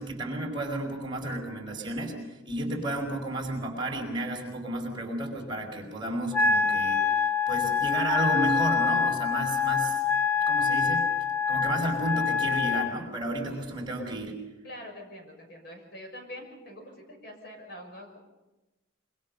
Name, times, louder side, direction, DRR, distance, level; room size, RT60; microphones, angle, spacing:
voice 1, 0.0-7.0 7.5-10.0 10.4-11.0 11.5-14.4, right 1 dB, 25° right, 1 dB, 5.2 m, -32 dB
Wind instrument woodwind instrument, 6.3-12.9, left 6 dB, 10° left, 1.1 m, -25 dB
voice 2, 14.6-18.2, equal, 55° left, 3 dB, 6.3 m, -44 dB
26.0 x 24.5 x 5.5 m, 1.1 s
head